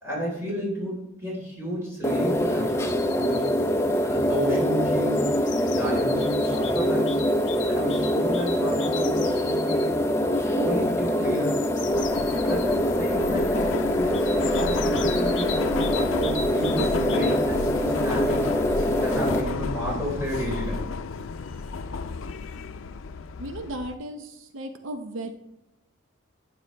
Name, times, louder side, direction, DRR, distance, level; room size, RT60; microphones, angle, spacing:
voice 1, 0.0-3.4 4.0-5.3 5.7-7.2 7.7-11.6 12.4-18.5 19.0-20.8 21.4-21.5, equal, 15° right, -5 dB, 4.2 m, -32 dB
sound 1, 2.0-19.4, equal, 15° left, 0.5 m, -24 dB
sound 2, 2.9-3.5 4.6-9.9 11.3-12.8 14.1-17.5, left 7 dB, 65° left, 0.9 m, -39 dB
Subway metro underground, 11.9-23.9, left 4 dB, 85° left, 0.5 m, -32 dB
voice 2, 23.4-25.3, right 1 dB, 80° right, 7 dB, 0.7 m, -35 dB
11.5 x 9.5 x 3.3 m, 0.86 s
head